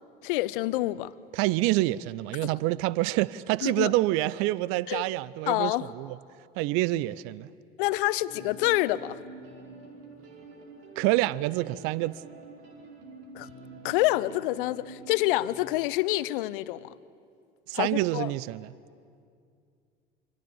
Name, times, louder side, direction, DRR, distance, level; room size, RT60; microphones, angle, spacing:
voice 1, 0.2-1.1 3.6-3.9 4.9-5.0 5.5-5.9 7.8-9.2 13.3-13.5 13.8-16.9 17.7-18.3, left 18 dB, 60° left, 0.8 m, -27 dB
voice 2, 1.3-5.7 6.0-6.2 6.6-7.5 11.0-12.2 17.7-18.7, right 17 dB, 50° right, 0.6 m, -27 dB
sound 1, 8.3-15.5, right 3 dB, 70° right, 4.6 m, -47 dB
27.5 x 25.0 x 7.3 m
figure-of-eight pair, 65°, 30 cm